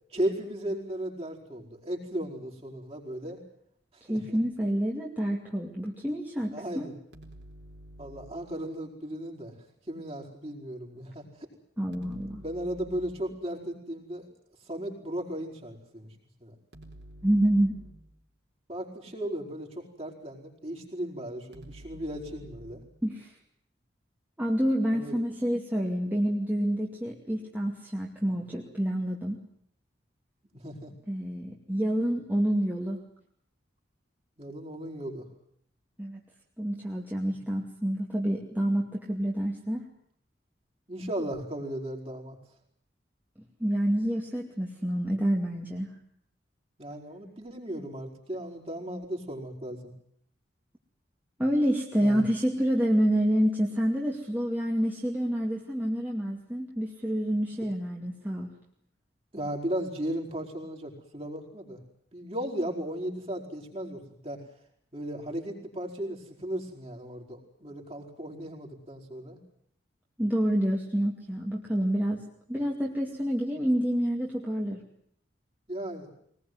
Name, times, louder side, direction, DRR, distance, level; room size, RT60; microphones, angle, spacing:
voice 1, 0.1-3.4 3.9-4.4 6.5-6.9 8.0-9.5 9.9-11.2 12.4-14.3 14.7-16.1 16.4-16.5 18.7-22.8 24.9-25.2 30.5-30.9 34.4-35.3 40.9-42.4 46.8-49.9 52.0-52.2 59.3-61.8 62.1-64.4 64.9-69.4 75.7-76.1, right 1 dB, 30° right, 1 dB, 5.0 m, -36 dB
voice 2, 4.1-6.9 11.8-12.4 17.2-17.7 23.0-23.3 24.4-29.4 31.1-33.0 36.0-36.2 36.6-39.9 43.6-45.9 51.4-58.5 70.2-74.8, equal, 10° right, -2 dB, 2.4 m, -28 dB
sound 1, 7.1-8.6 11.9-13.4 16.7-18.2 21.5-23.0, right 1 dB, 70° right, 4.4 m, -49 dB
22.5 x 20.0 x 9.5 m, 0.67 s
head